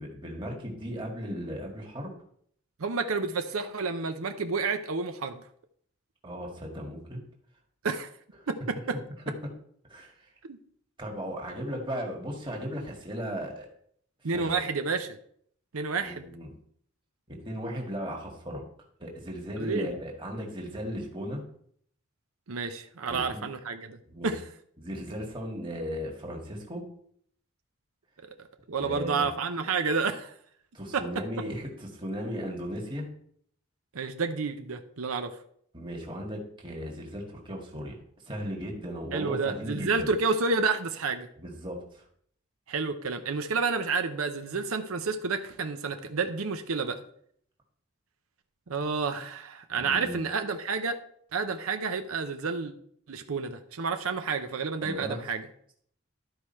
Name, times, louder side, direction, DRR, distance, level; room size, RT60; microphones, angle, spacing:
voice 1, 0.0-2.1 6.2-7.2 9.9-10.3 11.0-13.7 14.2-14.6 16.0-16.5 17.3-18.6 19.0-21.4 23.1-23.5 24.0-24.3 24.8-26.8 28.8-29.3 30.7-33.1 35.7-38.0 38.2-40.1 41.4-42.0 49.8-50.2 54.8-55.2, equal, 20° right, 0 dB, 1.6 m, -36 dB
voice 2, 2.8-5.4 7.8-8.1 8.5-9.0 10.5-10.6 14.2-15.2 15.7-16.3 19.6-20.0 22.5-24.0 24.2-24.4 28.7-30.3 30.9-31.0 33.9-35.3 39.1-41.3 42.7-47.0 48.7-51.0 51.3-52.7 53.1-55.5, right 4 dB, 85° right, 7 dB, 0.7 m, -30 dB
12.0 x 4.8 x 4.3 m, 0.64 s
head